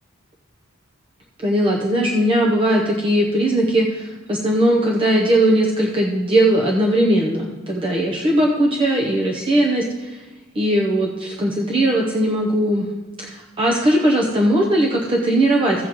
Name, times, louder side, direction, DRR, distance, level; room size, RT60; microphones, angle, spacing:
voice 1, 1.4-10.2 10.5-12.9 13.2-15.9, right 1 dB, 25° right, -2 dB, 0.8 m, -19 dB
16.0 x 8.2 x 3.0 m, 1.2 s
head